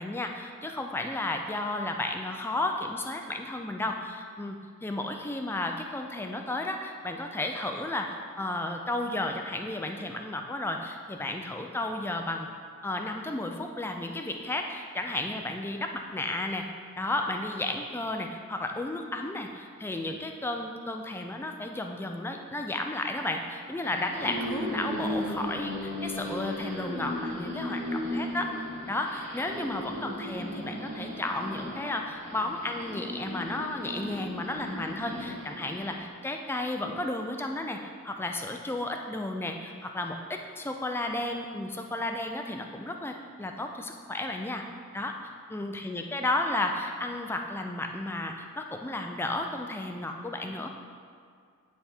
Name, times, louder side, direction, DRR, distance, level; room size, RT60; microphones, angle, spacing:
voice 1, 0.0-12.5 12.8-16.7 17.0-28.5 28.9-37.8 38.0-44.6 44.9-45.1 45.5-50.7, left 2 dB, 10° left, 3 dB, 0.4 m, -33 dB
sound 1, 23.7-36.0, left 1 dB, 30° right, 1.6 m, -36 dB
9.7 x 3.5 x 4.4 m, 2.2 s
head